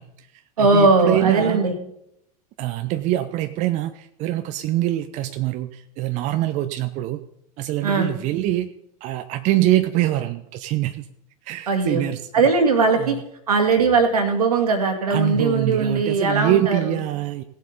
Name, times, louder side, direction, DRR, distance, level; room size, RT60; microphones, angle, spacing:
voice 1, 0.0-1.6 2.6-7.2 7.6-8.7 9.0-11.1 11.4-12.5 13.0-13.2 15.1-17.4, right 14 dB, 40° right, 9 dB, 0.6 m, -24 dB
voice 2, 0.6-1.7 7.8-8.1 11.7-13.2 13.5-17.0, right 3 dB, 75° right, 5 dB, 2.1 m, -19 dB
17.5 x 7.7 x 4.0 m, 0.76 s
figure-of-eight pair, 90°, 20 cm